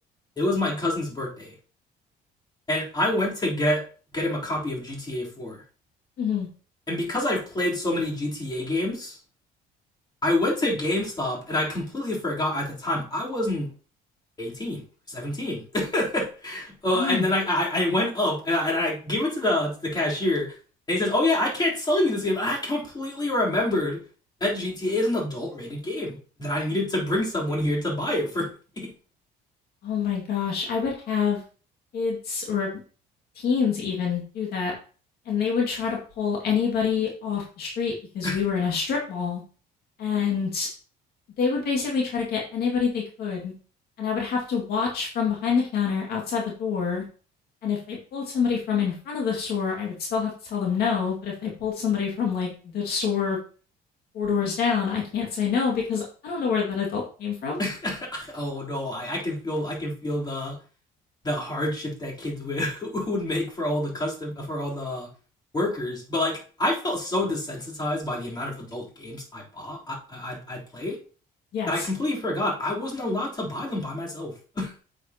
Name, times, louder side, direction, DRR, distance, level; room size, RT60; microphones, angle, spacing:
voice 1, 0.4-1.5 2.7-3.8 4.1-5.6 6.9-9.2 10.2-13.7 14.4-14.8 15.1-20.6 20.9-24.0 24.4-28.5 28.8-28.9 38.2-38.4 57.6-60.6 61.2-65.1 65.5-71.0 71.7-74.7, left 1 dB, 25° left, -4 dB, 3.6 m, -27 dB
voice 2, 6.2-6.5 16.9-17.3 29.8-31.4 31.9-32.7 33.4-34.7 35.3-39.4 40.0-40.7 41.4-43.5 44.0-47.0 47.6-53.4 54.1-57.6 71.5-71.9, left 6 dB, 65° left, -1 dB, 2.2 m, -26 dB
8.4 x 7.6 x 2.9 m, 0.38 s
cardioid pair, 110°, 17 cm